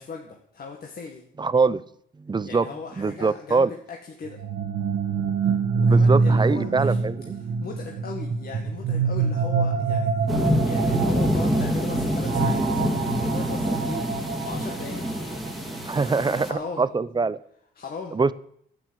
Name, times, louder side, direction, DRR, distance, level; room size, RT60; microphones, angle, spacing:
voice 1, 0.0-1.2 2.4-4.4 5.7-7.1 7.6-12.8 13.2-14.1 14.5-15.4 15.8-16.9 17.8-18.2, left 5 dB, 50° left, 1 dB, 2.0 m, -38 dB
voice 2, 1.4-1.8 2.2-2.7 3.0-3.7 5.4-5.6 5.8-7.4 15.8-17.4 18.1-18.3, right 4 dB, 20° right, 16 dB, 0.7 m, -23 dB
sound 1, 4.2-16.1, right 4 dB, 75° right, 1.4 m, -25 dB
sound 2, 10.3-16.5, equal, ahead, 2.2 m, -26 dB
11.0 x 9.5 x 7.9 m, 0.67 s
cardioid pair, 90°, 20 cm